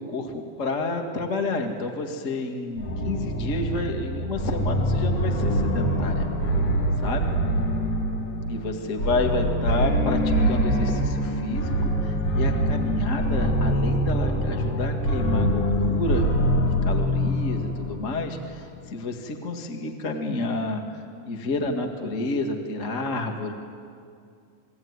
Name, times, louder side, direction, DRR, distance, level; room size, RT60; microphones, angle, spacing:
voice 1, 0.0-6.3 7.0-7.3 8.5-16.3 16.6-23.5, left 2 dB, 30° left, 3 dB, 1.5 m, -30 dB
sound 1, 2.8-18.5, equal, 55° left, 3.5 m, -24 dB
28.5 x 21.5 x 9.7 m, 2.3 s
omnidirectional pair, 4.5 m